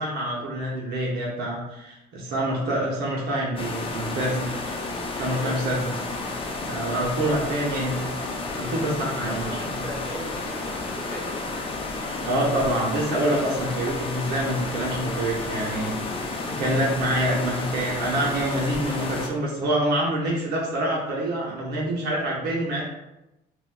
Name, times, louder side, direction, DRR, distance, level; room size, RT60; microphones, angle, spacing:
voice 1, 0.0-4.5 5.2-6.0 6.6-8.2 8.5-9.5 12.2-15.9 16.5-22.8, right 1 dB, 75° right, -4 dB, 0.8 m, -26 dB
sound 1, 3.6-19.3, left 3 dB, 30° left, 0.5 m, -31 dB
voice 2, 9.1-11.4, right 1 dB, 5° right, -7 dB, 1.0 m, -37 dB
3.9 x 2.1 x 2.3 m, 0.95 s
cardioid pair, 110°, 17 cm